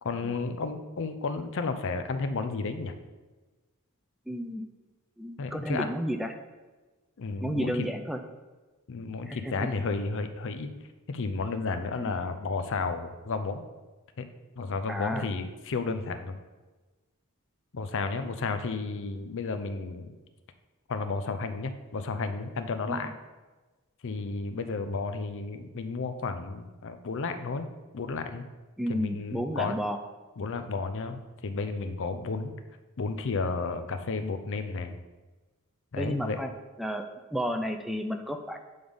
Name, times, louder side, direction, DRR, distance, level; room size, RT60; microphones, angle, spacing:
voice 1, 0.0-2.9 5.4-5.9 7.2-7.9 8.9-10.7 11.1-13.6 14.2-14.3 14.6-16.4 17.7-20.2 20.9-23.1 24.0-27.7 27.9-28.4 28.9-29.8 30.4-32.5 33.0-35.0 35.9-36.4, left 4 dB, 60° left, 8 dB, 0.5 m, -32 dB
voice 2, 4.3-4.7 5.2-6.3 7.4-8.2 9.3-9.7 12.1-12.2 14.9-15.3 22.9-23.1 28.8-30.0 36.0-36.5 36.8-38.6, equal, ahead, 5 dB, 0.4 m, -32 dB
8.0 x 3.6 x 5.1 m, 1.2 s
head